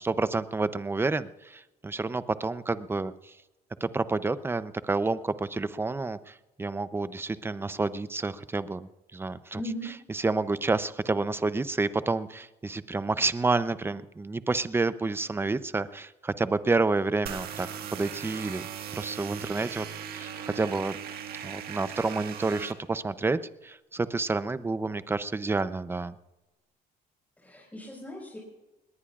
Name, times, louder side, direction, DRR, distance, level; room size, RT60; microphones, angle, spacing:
voice 1, 0.0-3.3 3.8-9.6 10.1-18.7 18.9-19.8 20.1-21.0 21.4-26.1, right 3 dB, 15° right, 14 dB, 0.6 m, -29 dB
voice 2, 9.5-9.9 27.4-28.4, equal, 10° left, -4 dB, 5.0 m, -38 dB
sound 1, 17.3-22.7, right 8 dB, 65° right, 1.7 m, -39 dB
21.0 x 18.5 x 2.5 m, 1.0 s
cardioid pair, 110°, 17 cm